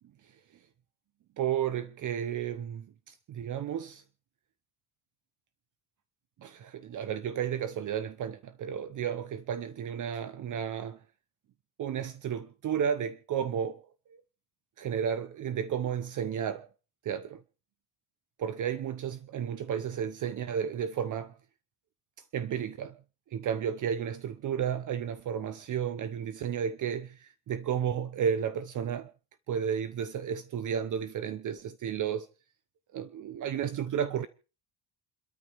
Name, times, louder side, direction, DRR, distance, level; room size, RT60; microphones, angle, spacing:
voice 1, 1.4-4.0 6.4-11.0 11.8-13.8 14.8-16.7 17.0-17.4 18.4-21.3 22.3-23.0 23.3-29.1 29.5-32.3 32.9-34.3, right 8 dB, 45° right, 0.9 m, -32 dB
28.5 x 13.5 x 3.5 m
cardioid pair, 165°, 43 cm